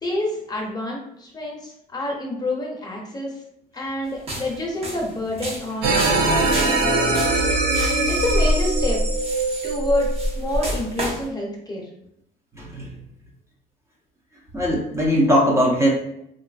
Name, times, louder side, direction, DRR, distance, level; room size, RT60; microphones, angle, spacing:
voice 1, 0.0-3.4 3.7-7.3 8.1-9.0 9.6-11.9, left 1 dB, 25° left, -2 dB, 0.7 m, -28 dB
sound 1, 4.1-11.3, equal, 35° right, 0.9 m, -27 dB
sound 2, 5.8-10.7, right 2 dB, 75° right, 0.7 m, -22 dB
voice 2, 12.5-12.9 14.5-15.9, equal, 15° right, -3 dB, 0.6 m, -20 dB
3.0 x 2.4 x 2.3 m, 0.76 s
cardioid pair, 110°, 17 cm